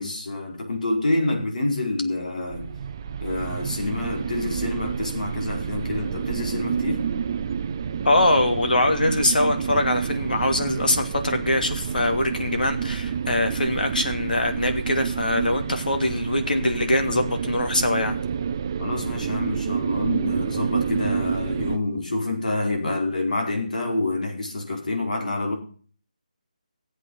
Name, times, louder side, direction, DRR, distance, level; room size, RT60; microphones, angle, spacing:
voice 1, 0.0-2.7 3.2-7.0 18.8-25.5, left 2 dB, 65° left, 5.0 m, -27 dB
sound 1, 2.5-21.8, right 7 dB, 25° right, 0.5 m, -29 dB
voice 2, 8.0-18.2, left 2 dB, 85° left, 2.8 m, -23 dB
15.5 x 8.2 x 5.7 m
hypercardioid pair, 170°, 5 cm